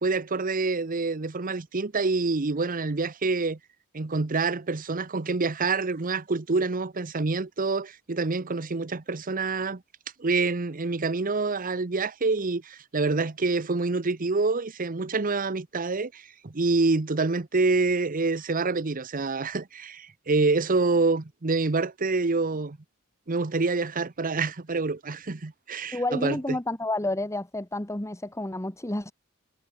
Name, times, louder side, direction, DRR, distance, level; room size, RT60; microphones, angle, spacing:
voice 1, 0.0-3.6 3.9-9.8 10.2-22.8 23.3-26.6, right 3 dB, 40° right, 0.9 m, -27 dB
voice 2, 25.9-29.1, left 1 dB, 15° left, 1.5 m, -30 dB
head